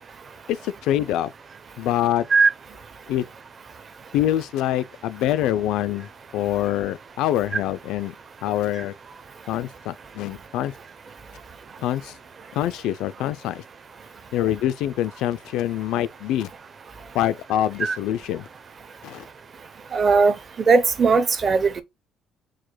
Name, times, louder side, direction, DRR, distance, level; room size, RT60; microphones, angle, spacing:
voice 1, 0.5-1.3 1.8-2.3 3.1-3.3 4.1-8.1 8.4-8.9 9.5-10.7 11.8-12.2 12.5-13.6 14.3-16.5 17.1-18.5 19.0-19.2, left 12 dB, 75° left, 0.4 m, -25 dB
voice 2, 19.9-20.3 20.7-21.8, right 4 dB, 30° right, 0.6 m, -18 dB
4.8 x 2.1 x 4.3 m
cardioid pair, 160°, 0 cm